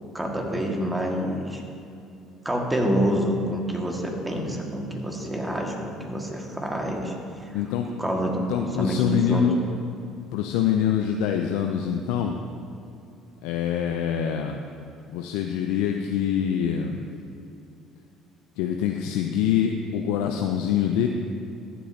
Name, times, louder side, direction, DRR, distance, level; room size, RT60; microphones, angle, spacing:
voice 1, 0.1-1.6 2.5-7.6 8.0-9.4, equal, 10° right, 0 dB, 1.8 m, -27 dB
voice 2, 4.4-4.7 7.5-7.9 8.4-9.6 10.3-12.4 13.4-14.6 15.1-17.1 18.6-21.1, left 8 dB, 80° left, 4 dB, 0.5 m, -25 dB
14.0 x 8.4 x 2.8 m, 2.7 s
supercardioid pair, 70°, 0 cm